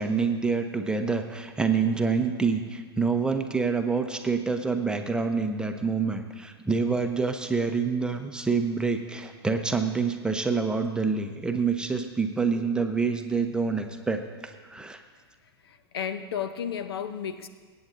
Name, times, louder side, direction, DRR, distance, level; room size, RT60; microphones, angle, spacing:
voice 1, 0.0-14.2 14.7-15.0, right 4 dB, 5° right, 5 dB, 0.9 m, -27 dB
voice 2, 15.6-17.5, left 8 dB, 65° left, 10 dB, 0.8 m, -33 dB
23.5 x 8.7 x 2.7 m, 1.5 s
figure-of-eight pair, 100°, 13 cm